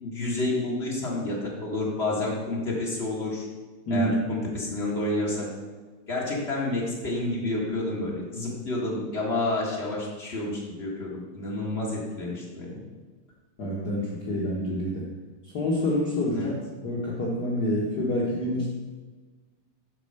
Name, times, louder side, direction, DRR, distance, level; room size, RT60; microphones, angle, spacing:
voice 1, 0.0-3.4 3.9-5.5 6.1-12.8 16.3-16.5, left 2 dB, 45° left, -4 dB, 0.8 m, -29 dB
voice 2, 13.6-15.0 15.5-16.6 16.8-18.7, left 1 dB, 75° left, -6 dB, 0.9 m, -27 dB
8.9 x 4.5 x 6.6 m, 1.4 s
omnidirectional pair, 4.0 m